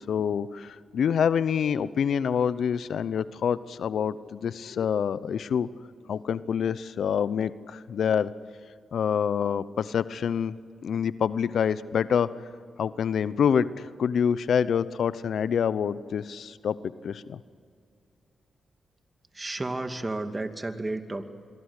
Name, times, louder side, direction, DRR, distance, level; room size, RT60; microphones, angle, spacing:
voice 1, 0.1-5.7 6.1-8.3 8.9-10.5 10.8-12.3 12.8-16.8 17.0-17.4, left 7 dB, 75° left, 16 dB, 0.8 m, -26 dB
voice 2, 19.3-21.2, right 2 dB, 30° right, 7 dB, 2.4 m, -32 dB
27.0 x 22.5 x 8.3 m, 2.2 s
supercardioid pair, 45°, 0 cm